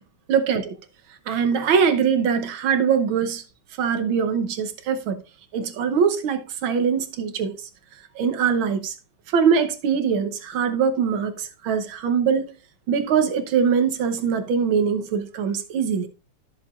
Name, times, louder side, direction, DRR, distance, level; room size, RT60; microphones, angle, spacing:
voice 1, 0.3-0.7 1.3-3.4 3.8-5.2 5.5-7.5 8.1-8.9 9.3-12.5 12.9-16.1, right 6 dB, 70° right, 1.6 m, -22 dB
13.0 x 6.9 x 2.4 m
omnidirectional pair, 2.4 m